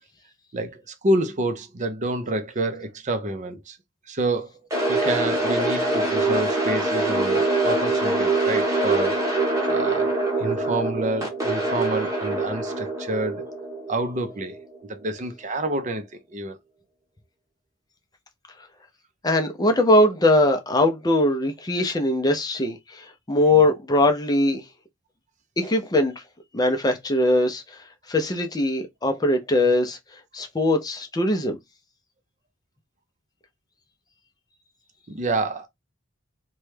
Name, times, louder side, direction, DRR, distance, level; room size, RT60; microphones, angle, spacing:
voice 1, 0.5-3.8 4.1-4.5 4.9-9.2 9.7-10.1 10.4-13.5 13.9-14.6 14.8-16.6 35.1-35.7, right 2 dB, 35° right, 0.5 m, -28 dB
sound 1, 4.7-14.8, right 2 dB, 15° right, 1.0 m, -24 dB
voice 2, 19.2-24.6 25.6-26.1 26.5-27.6 28.1-30.0 30.3-31.6, left 1 dB, 20° left, 0.5 m, -21 dB
3.0 x 2.2 x 3.2 m
head